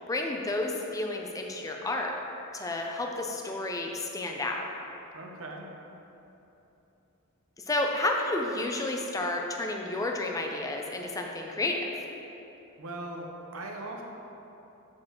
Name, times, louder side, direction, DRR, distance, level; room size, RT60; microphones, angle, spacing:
voice 1, 0.1-2.2 2.5-4.7 7.7-11.8, left 2 dB, 15° left, 2 dB, 0.5 m, -31 dB
voice 2, 5.1-5.7 12.8-14.0, right 2 dB, 80° right, 1 dB, 0.9 m, -39 dB
7.3 x 6.6 x 3.0 m, 3.0 s
head